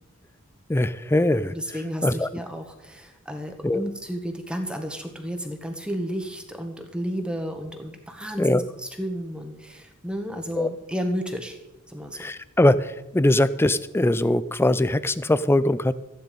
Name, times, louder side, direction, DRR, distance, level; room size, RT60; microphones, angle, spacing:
voice 1, 0.7-1.5 2.0-2.3 3.6-3.8 8.4-8.6 10.6-10.7 12.2-15.9, left 1 dB, 10° left, 16 dB, 0.4 m, -21 dB
voice 2, 1.5-11.6 11.9-12.2, equal, 5° right, 4 dB, 1.5 m, -32 dB
14.5 x 10.5 x 5.3 m, 0.93 s
head